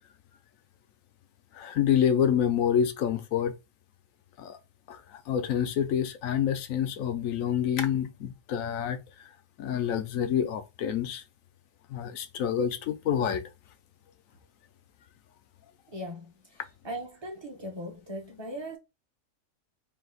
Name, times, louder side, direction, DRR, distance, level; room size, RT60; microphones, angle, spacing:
voice 1, 1.6-3.5 4.4-4.6 4.9-9.0 9.6-11.2 11.9-13.4, left 8 dB, 80° left, 1.1 m, -27 dB
voice 2, 15.9-16.3 16.8-18.8, equal, 25° right, 0.9 m, -38 dB
3.9 x 2.6 x 3.9 m
omnidirectional pair, 1.4 m